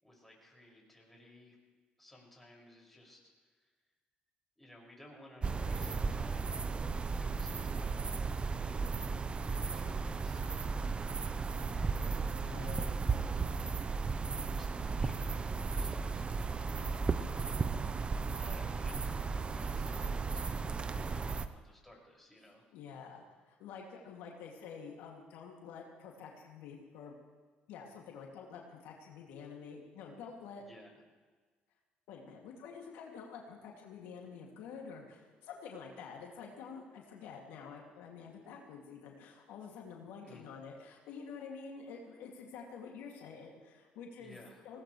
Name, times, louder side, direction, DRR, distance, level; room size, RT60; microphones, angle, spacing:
voice 1, 0.0-1.6 2.0-3.3 3.6-3.7 4.6-6.6 7.2-8.9 9.3-10.9 11.6-13.8 14.5-22.6 30.6-31.0 40.2-40.5 44.2-44.6, left 1 dB, 5° left, -2 dB, 6.1 m, -58 dB
sound 1, 5.4-21.5, right 4 dB, 30° right, 0.8 m, -35 dB
voice 2, 12.4-13.0 22.7-27.1 27.7-30.6 32.1-44.4 44.6-44.8, left 6 dB, 85° left, -1 dB, 2.5 m, -48 dB
20.5 x 18.0 x 3.3 m, 1.4 s
supercardioid pair, 80°, 3 cm